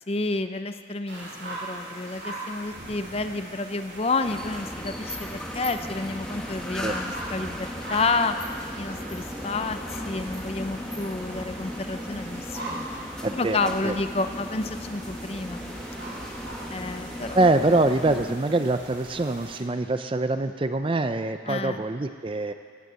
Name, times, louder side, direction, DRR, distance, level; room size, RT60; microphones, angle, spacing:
voice 1, 0.1-8.4 8.8-12.9 13.3-15.6 16.7-17.4 21.5-21.8, left 3 dB, 30° left, 9 dB, 0.6 m, -30 dB
sound 1, 1.1-19.6, right 1 dB, 65° right, 3.4 m, -41 dB
sound 2, 4.2-18.4, equal, 5° left, 1.0 m, -36 dB
voice 2, 13.2-14.0 17.3-22.5, right 2 dB, 30° right, 9 dB, 0.5 m, -24 dB
16.5 x 9.5 x 7.6 m, 2.1 s
head